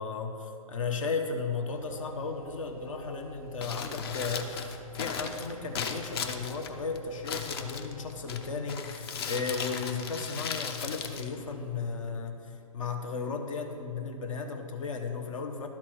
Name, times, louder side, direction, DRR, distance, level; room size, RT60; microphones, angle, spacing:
voice 1, 0.0-15.7, left 4 dB, 65° left, 5 dB, 1.1 m, -35 dB
sound 1, 1.7-8.5, right 7 dB, 85° right, 0.4 m, -49 dB
Crumpling crinkling, 3.5-12.0, left 6 dB, 45° left, 0.7 m, -37 dB
12.0 x 4.4 x 6.3 m, 2.8 s
hypercardioid pair, 130°, 18 cm